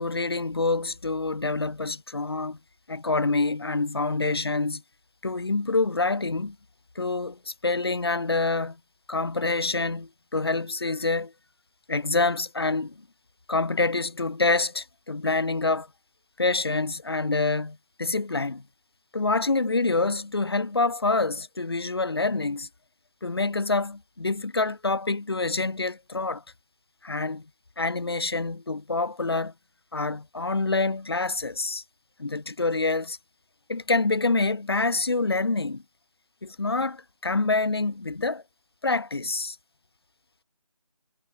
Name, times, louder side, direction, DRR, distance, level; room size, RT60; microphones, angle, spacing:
voice 1, 0.0-2.6 2.9-4.8 5.2-6.6 6.9-8.8 9.1-11.3 11.9-13.0 13.5-15.9 16.4-18.6 19.1-22.7 23.2-26.4 27.0-27.4 27.8-29.5 29.9-31.8 32.2-33.2 33.7-35.8 36.4-38.4 38.8-39.6, left 3 dB, 45° left, 1.4 m, -26 dB
figure-of-eight pair, 180°, 18 cm